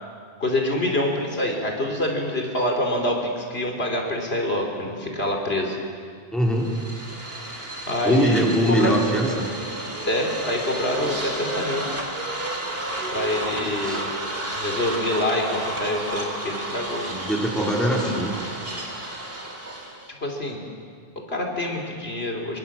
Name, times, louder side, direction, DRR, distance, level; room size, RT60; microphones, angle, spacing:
voice 1, 0.4-5.8 7.9-9.0 10.1-11.9 13.1-14.1 14.6-17.1 17.8-18.1 20.2-20.6 21.2-22.6, left 1 dB, 80° left, 1 dB, 3.5 m, -26 dB
voice 2, 6.3-6.7 8.0-9.4 13.5-14.0 17.0-18.3, right 1 dB, ahead, -2 dB, 4.1 m, -22 dB
sound 1, 6.5-20.1, right 1 dB, 70° right, 3.4 m, -31 dB
24.5 x 23.5 x 7.4 m, 2.1 s
omnidirectional pair, 1.0 m